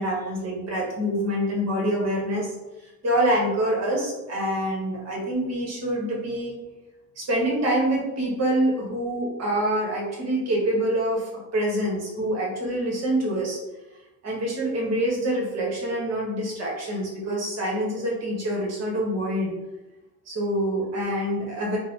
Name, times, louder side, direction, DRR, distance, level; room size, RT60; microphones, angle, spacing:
voice 1, 0.0-2.5 2.8-6.5 7.2-13.6 14.2-19.5 20.3-21.8, right 1 dB, 45° right, -2 dB, 1.2 m, -26 dB
3.5 x 2.1 x 3.1 m, 1.1 s
supercardioid pair, 85°, 36 cm